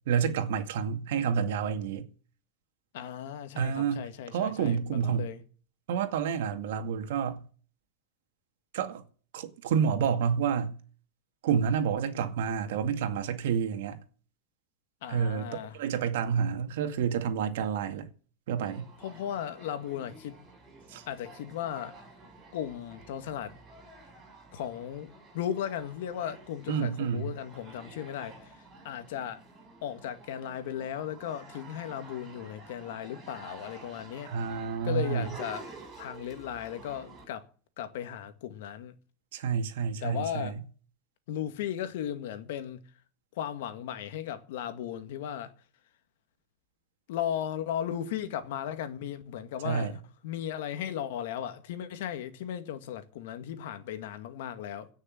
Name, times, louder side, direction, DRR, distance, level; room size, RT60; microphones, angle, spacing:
voice 1, 0.1-2.1 3.6-5.3 5.9-7.5 8.7-9.0 9.3-10.8 11.4-14.0 15.1-18.1 18.5-18.9 20.9-21.0 26.7-27.3 34.3-35.3 39.3-40.5 49.6-49.9, right 7 dB, 70° right, 2.2 m, -29 dB
voice 2, 2.9-5.4 15.0-15.8 19.0-20.4 21.1-22.0 22.5-23.5 24.5-29.4 29.8-34.3 34.8-35.7 36.0-37.4 37.8-38.9 40.0-40.6 41.3-42.8 43.4-45.5 47.1-54.9, left 10 dB, 60° left, 1.9 m, -36 dB
sound 1, 18.6-37.2, right 3 dB, 20° right, 5.4 m, -50 dB
17.0 x 6.6 x 7.7 m
supercardioid pair, 175°, 0 cm